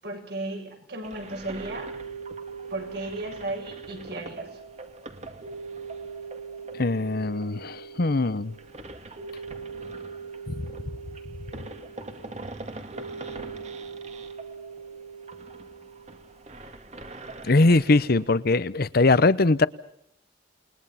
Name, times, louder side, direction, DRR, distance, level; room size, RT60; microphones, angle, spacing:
voice 1, 0.0-1.9 2.7-4.6, right 2 dB, 65° right, 4 dB, 7.3 m, -35 dB
sound 1, 1.0-18.4, right 2 dB, 40° right, 2.2 m, -44 dB
sound 2, 1.7-16.5, right 5 dB, 80° right, 5.5 m, -42 dB
voice 2, 6.7-8.5 10.5-10.6 17.4-19.7, left 3 dB, 55° left, 16 dB, 0.9 m, -21 dB
29.0 x 21.5 x 5.8 m, 0.73 s
head